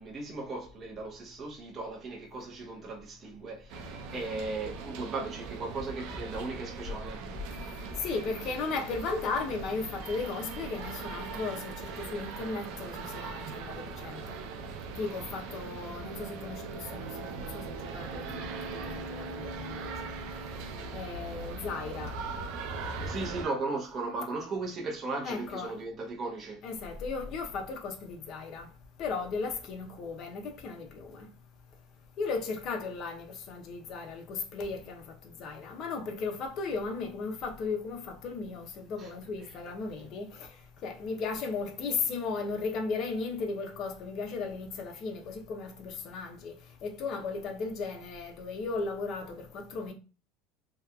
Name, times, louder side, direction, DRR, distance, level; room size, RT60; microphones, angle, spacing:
voice 1, 0.0-7.3 7.8-7.9 23.0-26.6 39.0-39.1, right 3 dB, 30° right, 0.7 m, -37 dB
sound 1, 3.7-23.5, right 4 dB, 60° right, 0.4 m, -40 dB
voice 2, 8.0-14.4 15.0-20.2 20.9-22.2 25.3-25.7 26.6-28.7 29.0-31.3 32.2-35.1 35.4-40.5 40.8-46.5 46.8-49.9, left 4 dB, 45° left, 0.6 m, -36 dB
2.8 x 2.3 x 2.2 m
cardioid pair, 145°, 0 cm